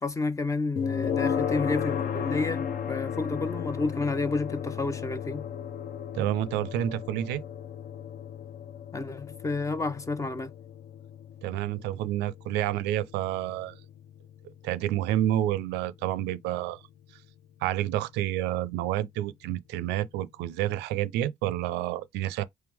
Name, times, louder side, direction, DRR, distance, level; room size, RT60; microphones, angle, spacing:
voice 1, 0.0-5.4 8.9-10.5, left 3 dB, 20° left, 0.5 m, -30 dB
sound 1, 0.8-15.7, left 8 dB, 55° left, 0.7 m, -35 dB
voice 2, 6.1-7.4 11.4-13.8 14.6-16.8 17.6-22.4, right 13 dB, 90° right, 0.4 m, -29 dB
3.5 x 3.1 x 3.4 m
cardioid pair, 110°, 17 cm